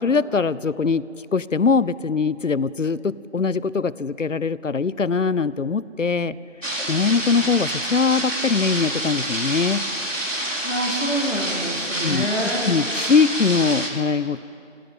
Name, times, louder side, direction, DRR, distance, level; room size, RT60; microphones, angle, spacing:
voice 1, 0.0-1.1 1.3-6.4 6.9-9.9 12.0-14.4, left 5 dB, 70° left, 19 dB, 0.6 m, -22 dB
sound 1, 6.6-13.9, right 1 dB, 75° right, 3.8 m, -27 dB
voice 2, 10.6-12.7, right 1 dB, 55° left, -2 dB, 3.1 m, -26 dB
25.0 x 15.0 x 8.5 m, 2.6 s
figure-of-eight pair, 175°, 39 cm